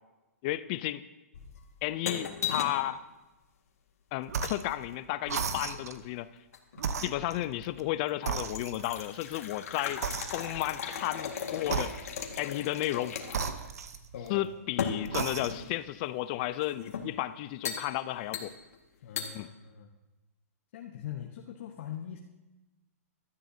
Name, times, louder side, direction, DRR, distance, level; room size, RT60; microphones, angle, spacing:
voice 1, 0.4-1.0 1.8-3.0 4.1-6.3 7.0-10.0 10.3-11.9 12.4-13.2 14.3-18.5 19.3-19.5, left 15 dB, 30° left, 15 dB, 0.4 m, -33 dB
sound 1, 1.3-2.9 4.4-5.8 6.5-7.2 7.7-7.8 8.1-13.7 13.9-14.0 14.8-15.8 16.6-17.2 17.6-17.9 18.3-18.8 19.2-19.3, left 7 dB, 70° left, 1.8 m, -37 dB
sound 2, 4.3-4.7 5.3-6.0 6.8-7.9 8.3-9.1 10.0-10.8 11.6-12.4 13.3-14.4 15.0-15.8, right 6 dB, 75° right, 0.9 m, -35 dB
voice 2, 14.1-14.5 19.0-19.9 20.7-22.2, left 10 dB, 50° left, 2 dB, 1.1 m, -41 dB
17.0 x 12.5 x 2.8 m, 1.1 s
hypercardioid pair, 155°, 8 cm